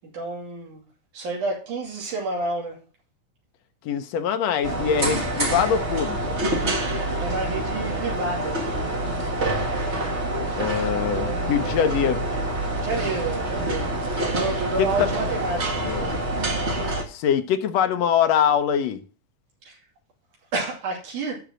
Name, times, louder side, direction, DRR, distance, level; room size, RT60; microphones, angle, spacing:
voice 1, 0.1-0.8 1.1-2.8 7.2-8.6 9.1-9.2 10.9-11.9 12.8-13.9 14.3-15.9 19.6-19.8 20.5-21.4, right 3 dB, 80° right, 4.3 m, -30 dB
voice 2, 3.8-6.4 10.6-12.2 14.8-15.1 15.9-16.1 17.1-19.0, left 8 dB, 70° left, 1.8 m, -23 dB
sound 1, 4.6-17.0, right 1 dB, 30° right, 1.4 m, -26 dB
12.0 x 4.0 x 7.6 m
omnidirectional pair, 3.5 m